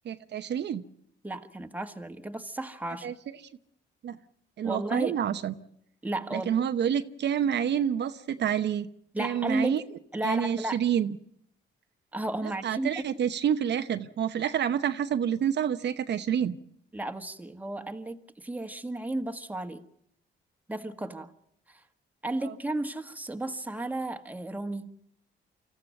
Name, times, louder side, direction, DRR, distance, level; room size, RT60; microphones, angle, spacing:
voice 1, 0.0-0.8 3.0-3.3 4.0-4.2 4.6-5.5 6.3-8.9 9.2-9.8 10.2-11.2 12.4-16.6 22.4-22.5, right 9 dB, 60° right, 9 dB, 0.9 m, -28 dB
voice 2, 1.2-3.1 4.6-5.2 6.0-6.5 9.1-9.8 10.1-10.8 12.1-13.0 16.9-19.8 20.7-21.3 21.7-21.8 22.2-24.9, right 1 dB, 10° right, 6 dB, 1.6 m, -33 dB
25.0 x 14.5 x 9.0 m, 0.70 s
cardioid pair, 90°, 20 cm